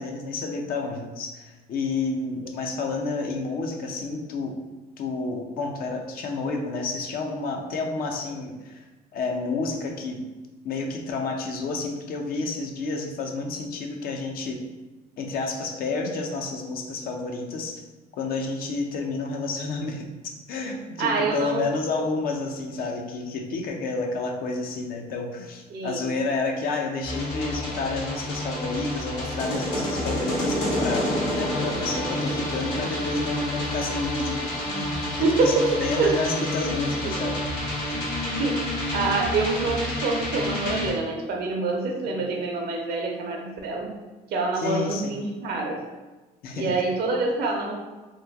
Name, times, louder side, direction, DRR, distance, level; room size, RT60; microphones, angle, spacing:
voice 1, 0.0-4.6 5.0-8.8 9.1-10.3 10.6-14.7 15.2-17.8 18.2-37.4 37.8-38.0 42.0-42.2 44.6-45.1 46.4-46.7, left 3 dB, 60° left, 2 dB, 0.5 m, -30 dB
voice 2, 21.0-21.7 25.7-26.0 35.2-35.7 36.0-36.7 37.0-37.1 38.0-38.6 38.9-43.9 44.3-45.8 46.5-47.7, right 3 dB, 70° right, 1 dB, 0.7 m, -26 dB
sound 1, 27.0-40.9, left 1 dB, 90° left, 1.5 m, -29 dB
3.0 x 2.2 x 3.4 m, 1.2 s
cardioid pair, 110°, 17 cm